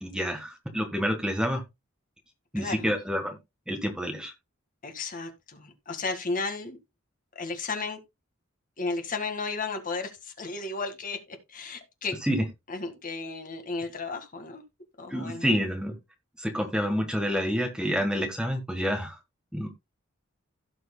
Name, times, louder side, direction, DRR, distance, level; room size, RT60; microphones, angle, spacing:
voice 1, 0.0-1.6 2.5-3.4 3.7-4.3 12.2-12.4 15.1-15.9 16.4-19.2 19.5-19.7, equal, 5° right, 1.5 m, -28 dB
voice 2, 4.8-6.8 7.4-8.0 8.8-12.2 12.7-14.6 15.0-15.5, left 3 dB, 40° left, 1.8 m, -34 dB
16.5 x 6.2 x 2.3 m
head